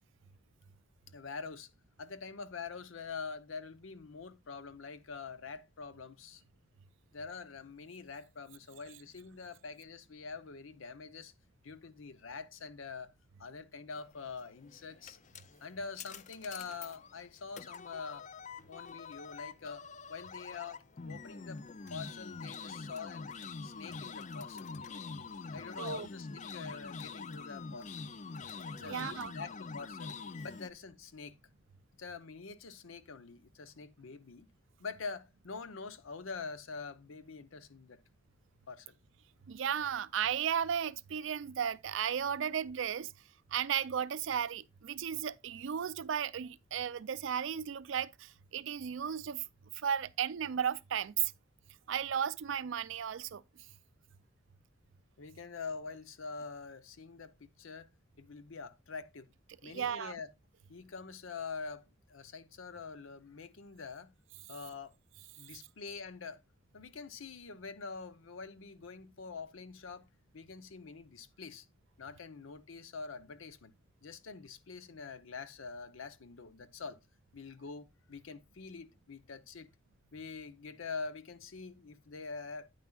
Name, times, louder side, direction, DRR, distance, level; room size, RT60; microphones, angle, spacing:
voice 1, 1.1-1.7 2.0-6.4 7.1-11.3 11.6-13.1 13.4-15.2 15.6-18.3 18.7-19.8 20.1-21.6 21.9-23.4 23.6-24.7 25.5-28.1 28.7-31.4 32.0-34.5 34.8-38.0 38.7-38.9 55.2-57.9 58.2-59.3 59.6-60.3 60.7-64.1 64.5-65.0 65.4-66.4 66.7-70.1 70.3-71.6 72.0-73.7 74.0-77.0 77.3-79.7 80.1-82.7, left 4 dB, 80° left, 0.7 m, -45 dB
sound 1, 14.5-30.7, left 4 dB, 35° left, 0.4 m, -45 dB
voice 2, 28.8-29.3 39.5-43.1 43.5-49.4 49.7-51.3 51.9-53.4 59.6-60.1, right 8 dB, 70° right, 0.4 m, -35 dB
9.4 x 9.1 x 2.3 m
head